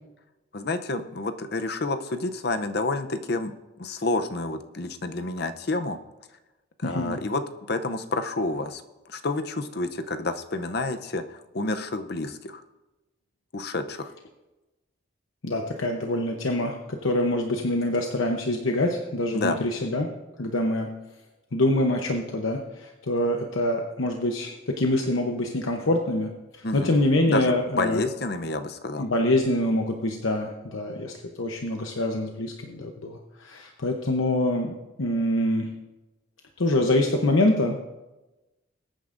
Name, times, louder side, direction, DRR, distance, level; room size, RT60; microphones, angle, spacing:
voice 1, 0.5-3.5 3.8-6.0 6.8-8.8 9.1-12.6 13.5-14.1 19.3-19.6 26.6-27.0 27.3-29.1, left 2 dB, 55° left, 9 dB, 0.7 m, -29 dB
voice 2, 6.8-7.2 15.4-20.1 20.4-20.9 21.5-28.0 29.0-35.7 36.6-37.8, left 1 dB, 80° left, 2 dB, 0.9 m, -25 dB
21.5 x 9.1 x 2.6 m, 1.1 s
head